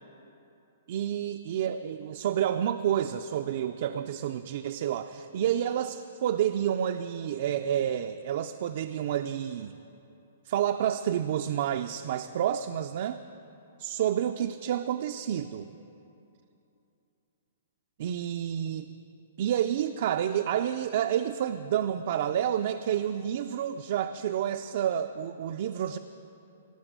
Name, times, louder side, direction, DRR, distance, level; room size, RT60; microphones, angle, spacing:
voice 1, 0.9-9.7 10.5-13.2 13.8-15.7 18.0-18.9 19.4-26.0, right 10 dB, 45° right, 7 dB, 0.4 m, -29 dB
16.5 x 7.0 x 8.0 m, 2.8 s
hypercardioid pair, 165°, 0 cm